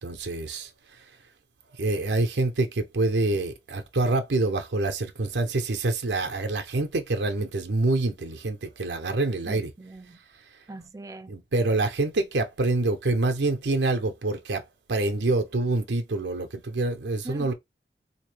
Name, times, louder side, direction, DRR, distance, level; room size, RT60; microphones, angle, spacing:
voice 1, 0.0-1.0 1.7-9.7 11.3-17.5, right 2 dB, 80° right, 0.7 m, -26 dB
voice 2, 9.5-10.2 10.7-11.3 17.2-17.5, right 2 dB, 20° right, 0.3 m, -41 dB
3.6 x 2.8 x 3.2 m
head